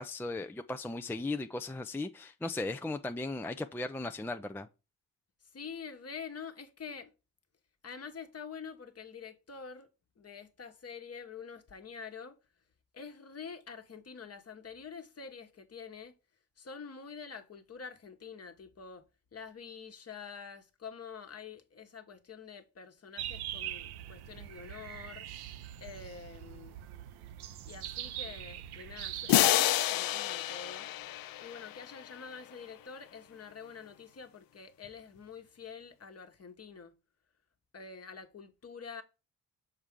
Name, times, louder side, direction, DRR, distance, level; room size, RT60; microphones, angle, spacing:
voice 1, 0.0-4.7, left 2 dB, 5° left, 0.4 m, -37 dB
voice 2, 5.5-7.1 7.8-9.9 10.2-12.4 12.9-16.1 16.6-25.3 25.8-26.8 27.6-30.9 31.4-36.9 37.7-39.0, left 6 dB, 40° left, 1.2 m, -47 dB
sound 1, 23.2-29.3, right 12 dB, 85° right, 0.7 m, -42 dB
sound 2, 29.3-32.1, left 14 dB, 65° left, 0.5 m, -29 dB
6.7 x 4.5 x 3.6 m
cardioid pair, 75°, 38 cm